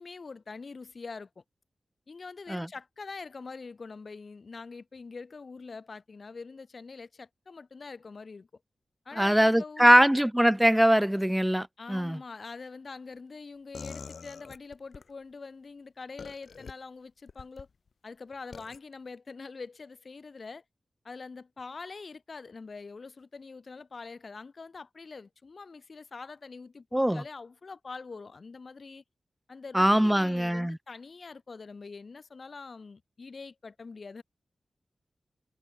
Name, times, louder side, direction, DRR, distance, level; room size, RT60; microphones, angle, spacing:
voice 1, 0.0-1.4 2.1-8.5 9.0-10.1 11.8-17.7 18.0-20.6 21.0-29.0 29.5-34.2, left 4 dB, 55° left, 3.3 m, -44 dB
voice 2, 9.2-12.2 26.9-27.2 29.7-30.8, equal, 5° right, 0.3 m, -22 dB
sound 1, 13.7-15.1 16.2-16.7 17.3-17.7 18.5-18.8, left 5 dB, 70° left, 2.5 m, -44 dB
wide cardioid pair, 90°, 0 cm